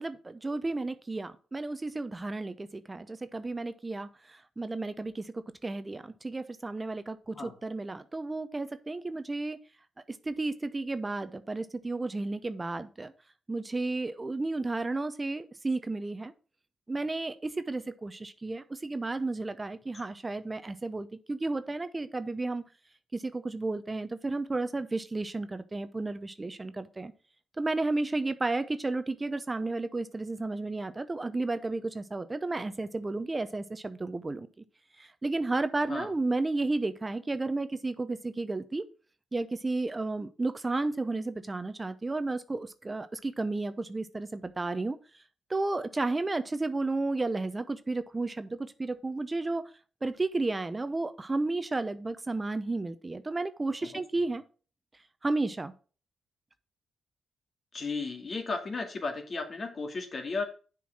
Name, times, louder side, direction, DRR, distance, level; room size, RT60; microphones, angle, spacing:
voice 1, 0.0-9.6 10.1-13.1 13.5-16.3 16.9-22.6 23.1-27.1 27.6-34.5 35.0-38.8 39.3-45.2 45.5-49.7 50.0-54.4 55.2-55.7, right 2 dB, 30° right, 12 dB, 0.7 m, -32 dB
voice 2, 57.7-60.4, left 3 dB, 50° left, 4 dB, 2.2 m, -34 dB
7.0 x 4.7 x 5.9 m, 0.37 s
supercardioid pair, 50°, 0 cm